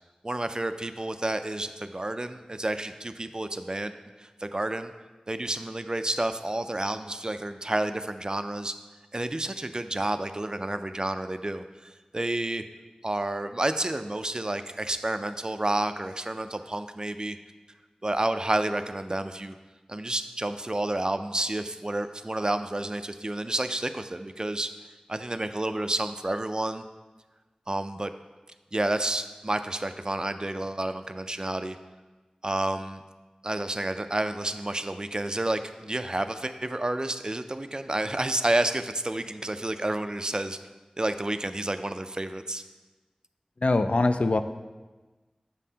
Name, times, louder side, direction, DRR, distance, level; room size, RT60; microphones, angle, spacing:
voice 1, 0.2-3.9 4.2-4.9 5.3-8.7 9.1-12.6 13.0-17.4 18.0-19.5 19.9-24.7 25.1-26.8 27.7-28.1 28.7-31.8 32.4-33.0 33.4-40.6 41.0-42.6, right 1 dB, 35° right, 10 dB, 0.3 m, -30 dB
voice 2, 43.6-44.4, left 2 dB, 60° left, 9 dB, 0.3 m, -22 dB
7.4 x 5.4 x 2.8 m, 1.2 s
wide cardioid pair, 50°, 2 cm